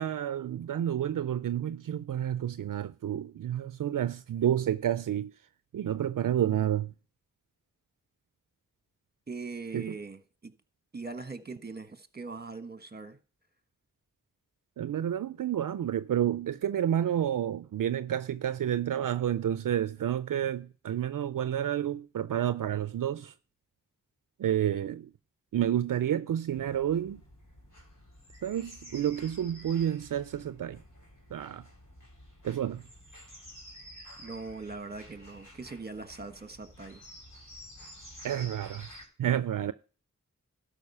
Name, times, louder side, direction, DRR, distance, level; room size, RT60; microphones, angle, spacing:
voice 1, 0.0-5.3 5.7-6.9 9.7-9.9 14.8-23.3 24.4-25.1 25.5-27.2 28.4-30.8 31.3-31.7 32.4-32.9 38.2-38.9 39.2-39.7, right 10 dB, 75° right, 0.5 m, -30 dB
voice 2, 9.3-10.5 10.9-13.2 34.2-37.0, right 4 dB, 30° right, 1.3 m, -41 dB
sound 1, 26.5-39.0, equal, 65° left, 4.1 m, -51 dB
12.5 x 5.2 x 5.5 m
cardioid pair, 40°, 32 cm